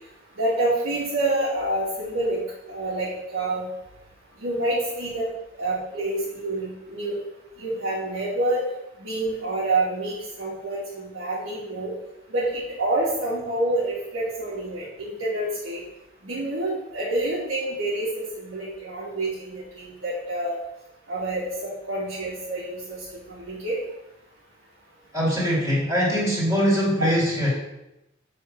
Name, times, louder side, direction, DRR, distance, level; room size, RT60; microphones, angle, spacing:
voice 1, 0.4-2.4 2.7-3.7 4.4-5.3 5.6-7.2 7.6-8.6 9.0-11.9 12.3-15.8 16.2-18.1 18.4-20.6 21.1-23.0 23.3-23.8 27.0-27.1, right 2 dB, 85° right, -9 dB, 2.6 m, -27 dB
voice 2, 25.1-27.5, equal, 15° right, -5 dB, 2.9 m, -22 dB
8.0 x 4.6 x 6.1 m, 0.90 s
head